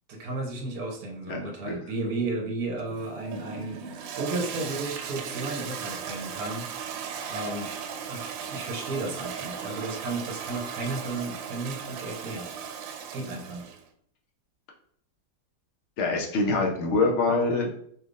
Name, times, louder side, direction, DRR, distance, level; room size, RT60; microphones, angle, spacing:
voice 1, 0.1-3.8 4.1-6.7 7.3-7.7 8.1-12.5 13.1-13.7, right 2 dB, 60° right, 1 dB, 1.1 m, -33 dB
voice 2, 1.3-1.8 16.0-17.7, left 3 dB, 55° left, 0 dB, 0.9 m, -25 dB
Toilet flush, 2.8-13.8, right 7 dB, 80° right, 1.3 m, -37 dB
4.8 x 3.4 x 2.5 m, 0.64 s
omnidirectional pair, 2.0 m